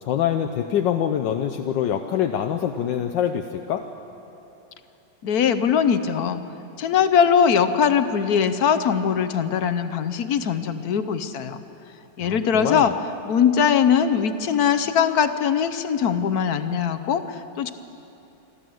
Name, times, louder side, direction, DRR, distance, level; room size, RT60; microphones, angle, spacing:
voice 1, 0.0-3.8 12.2-12.9, left 9 dB, 80° left, 5 dB, 1.4 m, -25 dB
voice 2, 5.2-6.4 6.8-11.6 12.2-12.9 13.3-17.7, left 7 dB, 60° left, 11 dB, 1.2 m, -21 dB
26.5 x 13.0 x 7.7 m, 2.8 s
omnidirectional pair, 2.0 m